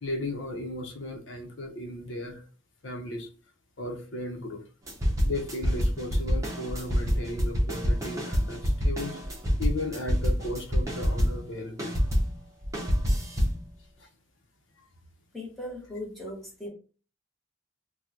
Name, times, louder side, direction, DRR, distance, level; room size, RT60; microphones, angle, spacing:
voice 1, 0.0-2.5 2.8-3.3 3.8-4.6 5.2-12.0 14.0-14.1, left 2 dB, 75° left, 4 dB, 0.8 m, -35 dB
sound 1, 4.9-11.5 11.8-13.6, equal, 15° right, 0.8 m, -27 dB
voice 2, 15.3-16.7, left 1 dB, ahead, -3 dB, 1.0 m, -38 dB
3.0 x 2.3 x 3.6 m, 0.36 s
head